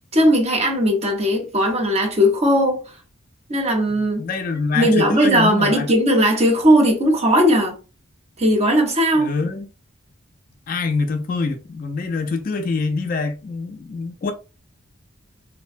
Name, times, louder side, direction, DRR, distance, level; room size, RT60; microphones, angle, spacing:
voice 1, 0.1-2.8 3.5-4.2 4.7-7.8 8.4-9.3, equal, 30° right, 0.6 m, -17 dB
voice 2, 3.9-5.9 9.1-9.7 10.7-14.3, left 4 dB, 40° left, 0.3 m, -25 dB
2.6 x 2.1 x 2.5 m
head